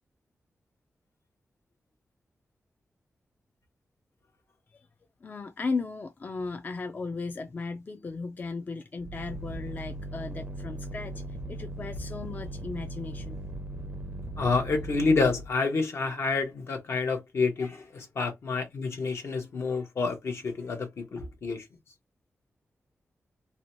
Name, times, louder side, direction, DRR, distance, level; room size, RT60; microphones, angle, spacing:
voice 1, 5.2-13.4, left 4 dB, 40° left, 0.3 m, -36 dB
sound 1, 9.0-15.6, right 1 dB, 35° right, 0.4 m, -38 dB
voice 2, 14.4-21.7, left 4 dB, 70° left, 0.8 m, -28 dB
2.7 x 2.2 x 3.0 m
wide cardioid pair, 100°, 5 cm